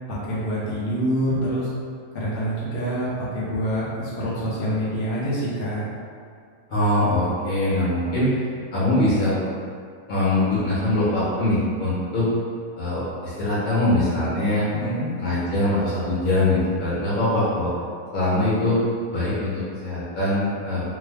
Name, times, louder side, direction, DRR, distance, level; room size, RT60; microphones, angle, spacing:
voice 1, 0.1-1.7 2.1-5.8 14.7-15.1, equal, 50° left, -8 dB, 0.8 m, -26 dB
voice 2, 6.7-8.4 8.7-9.3 10.1-12.3 12.8-14.7 15.2-17.7 18.1-18.8 19.1-20.8, left 1 dB, 65° left, -9 dB, 1.5 m, -22 dB
3.4 x 2.1 x 3.3 m, 2.2 s
omnidirectional pair, 1.6 m